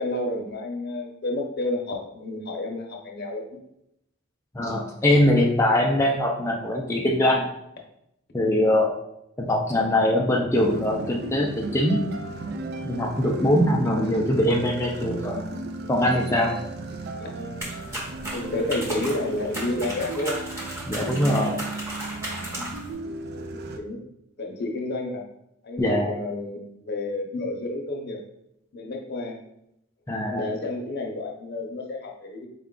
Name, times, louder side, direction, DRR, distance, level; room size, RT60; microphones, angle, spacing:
voice 1, 0.0-3.6 10.4-10.5 13.9-14.1 17.2-17.7 18.3-20.4 23.3-24.0 24.4-25.2 25.6-28.2 28.7-29.4 30.2-32.5, left 2 dB, 55° left, 1 dB, 0.7 m, -30 dB
voice 2, 4.5-7.5 8.3-8.9 9.4-12.0 12.8-15.4 15.9-16.5 20.9-21.6 25.8-26.1 30.1-30.4, left 1 dB, 15° left, -2 dB, 0.4 m, -22 dB
sound 1, 10.5-23.8, right 3 dB, 55° right, 0.4 m, -35 dB
sound 2, 17.6-22.9, right 1 dB, 10° right, 1.2 m, -35 dB
4.3 x 2.3 x 3.7 m, 0.79 s
head